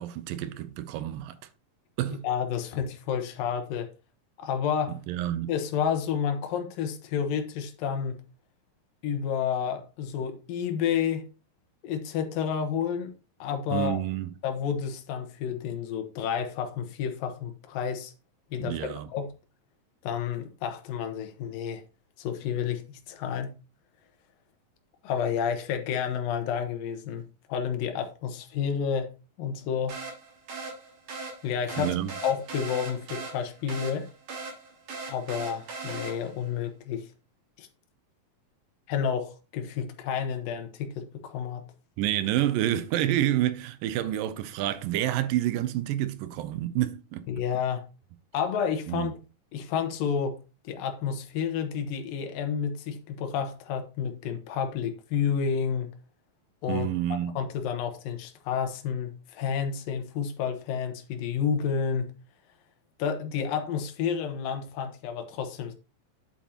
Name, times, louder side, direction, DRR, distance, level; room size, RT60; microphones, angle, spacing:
voice 1, 0.0-1.4 2.0-2.2 5.1-5.5 13.7-14.3 18.6-19.1 31.8-32.1 42.0-47.3 48.9-49.1 56.7-57.4, right 13 dB, 80° right, 2.4 m, -28 dB
voice 2, 2.2-3.9 4.4-5.0 5.5-8.2 9.0-11.3 11.8-13.1 13.4-14.0 14.4-18.1 18.5-19.3 20.0-21.8 22.2-23.5 25.0-27.2 27.5-29.1 29.4-29.9 31.4-34.1 35.1-37.1 37.6-37.7 38.9-41.6 47.3-47.8 48.3-49.2 49.5-50.4 50.6-55.9 56.6-62.1 63.0-65.7, left 7 dB, 80° left, 2.8 m, -30 dB
sound 1, 29.9-36.5, right 3 dB, 65° right, 4.5 m, -39 dB
9.3 x 8.5 x 2.9 m
omnidirectional pair, 4.0 m